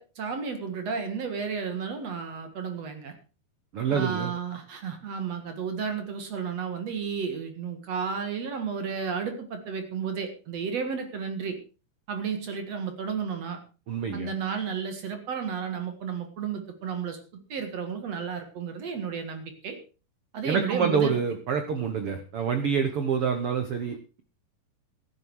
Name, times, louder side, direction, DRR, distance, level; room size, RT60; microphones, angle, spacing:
voice 1, 0.0-3.1 3.9-11.6 12.1-13.6 14.1-19.8 20.3-21.1, right 6 dB, 50° right, 7 dB, 2.5 m, -32 dB
voice 2, 3.7-4.3 13.9-14.3 20.4-24.2, right 6 dB, 75° right, 8 dB, 1.3 m, -27 dB
14.5 x 11.0 x 4.7 m, 0.35 s
omnidirectional pair, 4.4 m